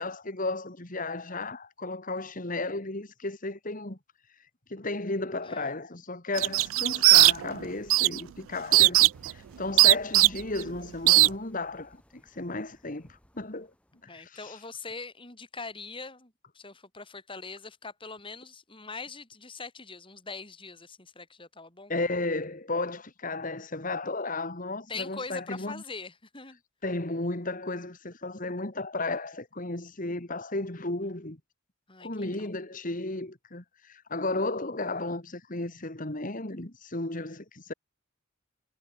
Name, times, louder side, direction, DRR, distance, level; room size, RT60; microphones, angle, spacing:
voice 1, 0.0-4.0 4.7-13.1 13.3-13.7 14.1-14.6 21.9-25.8 26.8-31.4 32.0-37.7, left 2 dB, 40° left, 2.2 m, -34 dB
sound 1, 6.4-7.6 7.9-8.2 8.7-9.3 9.8-10.6 11.1-11.3, right 20 dB, 75° right, 0.3 m, -18 dB
sound 2, 9.1-14.1, equal, 5° left, 6.3 m, -61 dB
voice 2, 14.0-21.9 24.9-26.6 31.9-32.5 37.2-37.3, left 4 dB, 25° left, 5.4 m, -42 dB
head